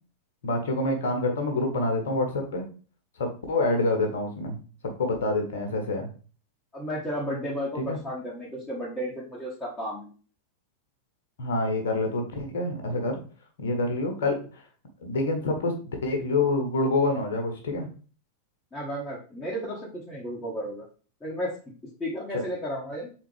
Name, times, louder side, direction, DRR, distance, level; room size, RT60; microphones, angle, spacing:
voice 1, 0.4-2.7 3.2-4.6 5.0-6.1 7.8-8.0 11.4-13.2 13.6-14.6 15.0-17.9 22.3-22.4, left 2 dB, 60° left, 3 dB, 1.2 m, -27 dB
voice 2, 6.7-10.1 18.7-20.8 21.2-21.5 22.0-23.1, equal, 10° left, -7 dB, 1.3 m, -33 dB
4.0 x 3.7 x 3.3 m, 0.38 s
figure-of-eight pair, 90°, 0 cm